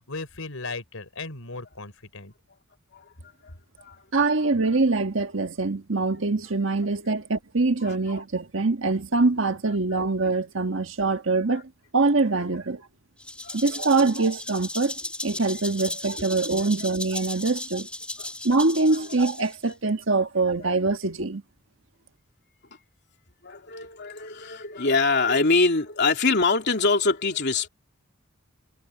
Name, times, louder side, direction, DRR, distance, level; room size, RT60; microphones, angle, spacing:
voice 1, 0.1-2.3, left 3 dB, 80° left, 4.1 m, -36 dB
voice 2, 4.1-11.6 11.9-12.9 13.5-14.9 15.2-17.9 18.4-21.4, right 3 dB, 65° right, 1.5 m, -24 dB
Rattle (instrument), 13.2-19.7, left 1 dB, 5° left, 2.6 m, -36 dB
voice 3, 23.4-27.7, left 3 dB, 55° left, 3.1 m, -24 dB
head